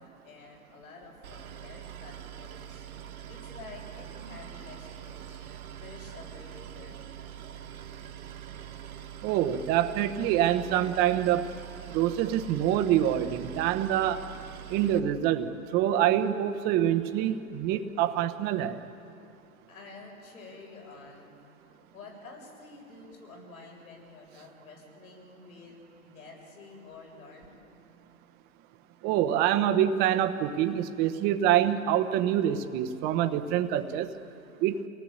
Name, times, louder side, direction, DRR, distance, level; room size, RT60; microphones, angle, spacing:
voice 1, 0.0-2.8 3.3-5.4 5.8-7.0 19.7-21.3 21.9-25.8 26.0-27.6, left 3 dB, 70° left, 0 dB, 7.6 m, -49 dB
Boat Water vehicle, 1.2-15.0, right 9 dB, 70° right, 2.1 m, -44 dB
voice 2, 9.2-11.5 11.9-14.3 14.7-18.8 29.0-34.1 34.6-34.8, right 11 dB, 20° right, 8 dB, 1.0 m, -26 dB
28.5 x 18.5 x 8.7 m, 2.6 s
hypercardioid pair, 145°, 44 cm